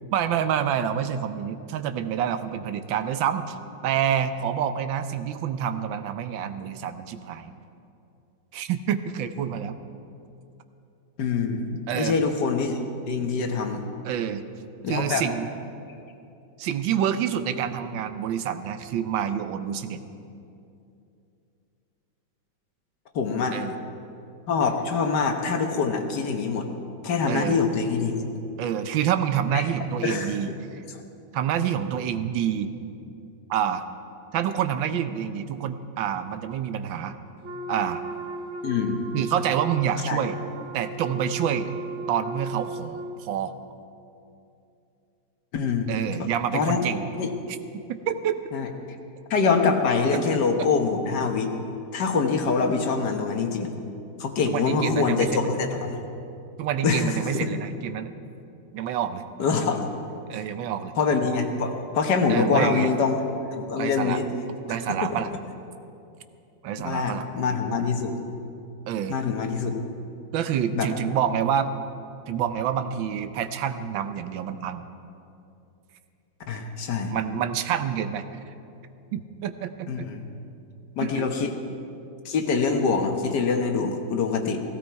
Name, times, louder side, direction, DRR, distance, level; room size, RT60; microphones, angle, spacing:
voice 1, 0.1-3.6 3.8-7.5 8.5-9.8 11.9-12.2 14.0-14.4 14.9-15.5 16.6-20.0 23.5-23.7 27.3-27.6 28.6-30.8 31.3-32.7 33.5-33.8 34.3-37.1 37.7-38.0 39.1-40.4 40.7-41.7 42.1-43.5 45.9-47.1 47.7-48.4 54.4-55.5 56.6-58.1 58.7-59.2 60.3-60.9 62.3-62.9 63.8-64.2 64.7-65.3 66.6-67.3 68.9-69.2 70.3-71.7 72.3-74.8 77.1-78.2 79.1-80.0 81.0-81.5, right 9 dB, 85° right, 10 dB, 1.5 m, -27 dB
voice 2, 11.2-12.8 13.1-13.9 14.8-15.2 23.1-23.6 24.5-26.7 27.0-28.3 29.5-29.6 30.0-30.3 38.6-39.0 40.1-40.2 45.5-45.9 46.2-46.3 46.5-46.9 47.2-47.3 48.5-48.7 49.3-51.5 51.9-53.7 54.2-56.0 56.8-57.5 59.4-59.8 61.0-63.2 63.6-64.2 65.0-65.1 66.8-68.1 69.1-69.8 70.7-70.9 76.5-77.1 79.9-80.3 81.0-81.5 82.2-84.6, left 5 dB, 65° left, 4 dB, 1.7 m, -24 dB
Wind instrument woodwind instrument, 37.4-43.2, right 2 dB, 50° right, 1.0 m, -36 dB
16.5 x 16.0 x 4.6 m, 2.7 s
omnidirectional pair, 2.0 m